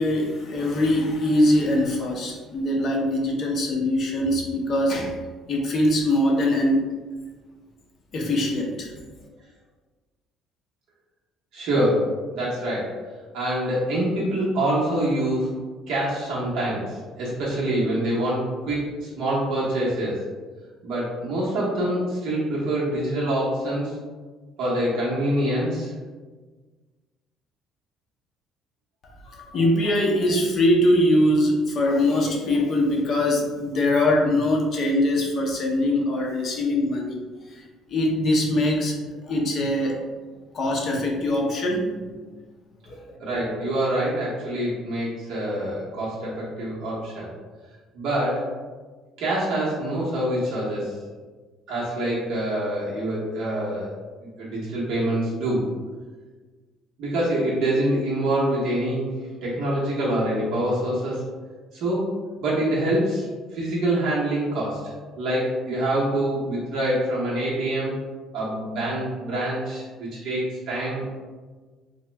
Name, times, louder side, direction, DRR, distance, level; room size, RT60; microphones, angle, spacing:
voice 1, 0.0-5.2 5.5-6.8 8.1-8.9 29.0-37.2 37.5-37.6 37.9-40.1 40.5-41.9 42.8-43.2, left 1 dB, 40° left, 0 dB, 0.6 m, -22 dB
voice 2, 11.5-12.9 13.3-15.5 15.9-20.2 20.8-24.0 24.6-25.9 43.2-47.3 47.9-48.5 49.2-51.0 51.7-53.9 54.4-55.6 57.0-59.1 59.4-61.2 61.7-62.1 62.4-63.3 63.5-64.8 65.2-67.9 68.3-71.1, right 1 dB, 60° right, -7 dB, 0.9 m, -25 dB
2.9 x 2.2 x 3.2 m, 1.4 s
cardioid pair, 155°, 0 cm